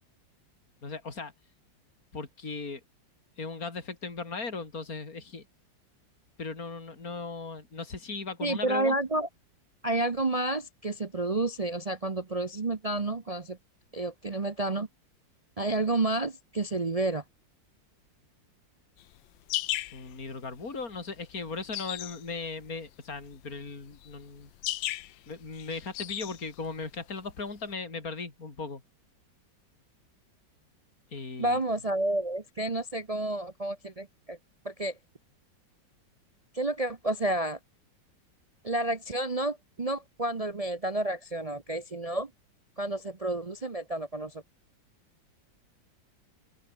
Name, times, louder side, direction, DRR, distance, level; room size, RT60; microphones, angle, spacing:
voice 1, 0.8-1.3 2.1-2.8 3.4-5.5 6.4-9.0 19.9-24.5 25.3-28.8 31.1-31.6, left 4 dB, 50° left, 4.3 m, -37 dB
voice 2, 8.4-9.3 9.8-13.6 13.9-14.9 15.6-17.2 31.4-34.4 34.6-35.0 36.5-37.6 38.6-42.3 42.8-44.4, right 2 dB, 40° right, 0.5 m, -30 dB
sound 1, 19.0-27.7, left 15 dB, 85° left, 1.4 m, -37 dB
open air
omnidirectional pair, 2.0 m